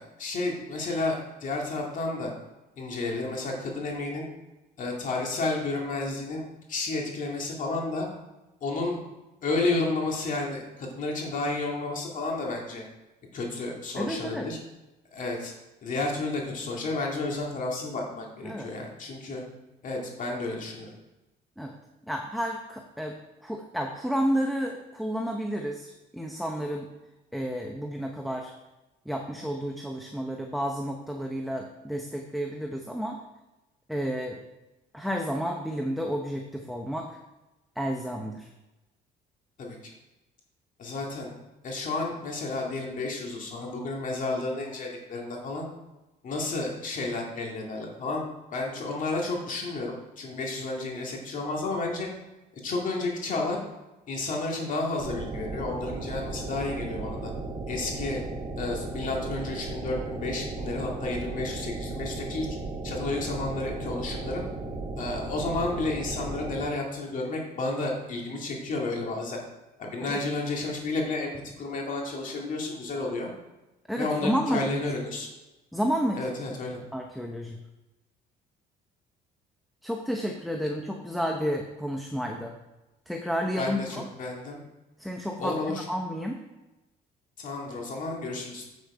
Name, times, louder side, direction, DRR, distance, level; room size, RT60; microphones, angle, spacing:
voice 1, 0.0-2.3 2.8-4.3 4.8-8.1 8.6-9.0 9.4-12.8 13.3-14.6 15.1-15.5 15.8-19.4 19.8-20.9 39.6-39.8 40.8-41.3 41.6-45.7 46.2-52.1 52.6-53.6 54.1-57.3 57.7-58.2 58.6-62.5 62.8-64.4 65.0-69.4 69.8-73.3 74.0-75.3 76.1-76.8 83.6-84.6 85.4-85.8 87.4-88.6, left 2 dB, 50° left, -1 dB, 2.1 m, -31 dB
voice 2, 14.0-14.5 18.4-18.7 21.6-21.8 22.1-23.2 23.4-26.9 27.3-28.5 29.1-33.2 33.9-34.4 34.9-37.2 37.8-38.5 70.0-70.2 73.9-74.9 75.7-76.2 76.9-77.6 79.8-82.5 83.1-84.0 85.0-86.4, equal, ahead, 2 dB, 0.8 m, -31 dB
sound 1, 55.0-66.6, right 2 dB, 50° right, 2.6 m, -35 dB
8.3 x 6.5 x 4.9 m, 1.0 s
cardioid pair, 110°, 17 cm